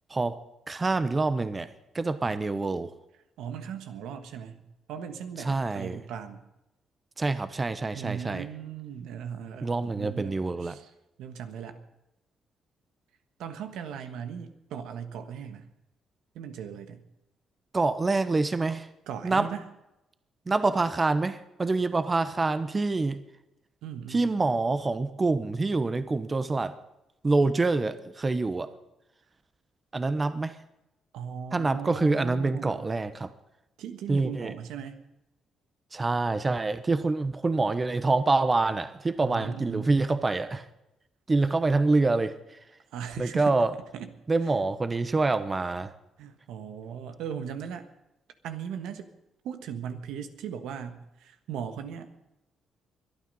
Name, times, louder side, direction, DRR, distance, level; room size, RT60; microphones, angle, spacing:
voice 1, 0.7-1.7 1.9-2.9 5.4-6.0 7.2-8.5 9.6-10.7 17.7-18.9 19.2-19.5 20.5-23.2 24.1-26.8 27.2-28.7 29.9-30.5 31.5-33.3 34.1-34.5 35.9-40.6 41.3-42.3 43.2-43.7 44.3-45.9, right 3 dB, 25° right, 12 dB, 1.0 m, -26 dB
voice 2, 3.4-6.4 7.9-10.9 11.2-11.8 13.4-15.7 16.3-17.0 19.1-19.6 23.8-24.3 31.1-32.9 33.8-35.0 39.2-39.9 42.9-43.6 43.9-44.1 46.2-47.9 48.4-49.1 49.4-52.1, right 8 dB, 85° right, 9 dB, 1.5 m, -38 dB
23.5 x 9.4 x 5.5 m, 0.92 s
cardioid pair, 90°, 0 cm